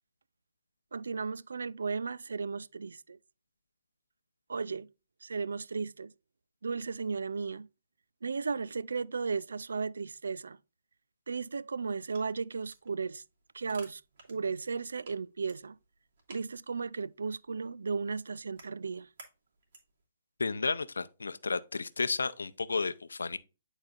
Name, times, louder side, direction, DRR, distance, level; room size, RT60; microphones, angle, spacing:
voice 1, 0.9-3.2 4.5-4.9 5.2-6.1 6.6-7.7 8.2-10.6 11.3-13.2 13.5-14.0 14.3-15.8 16.3-19.1, right 5 dB, 80° right, 0.3 m, -35 dB
sound 1, 11.8-20.1, right 3 dB, 60° right, 2.7 m, -58 dB
voice 2, 20.4-23.4, left 4 dB, 85° left, 0.6 m, -32 dB
11.0 x 4.1 x 2.4 m
hypercardioid pair, 135°, 0 cm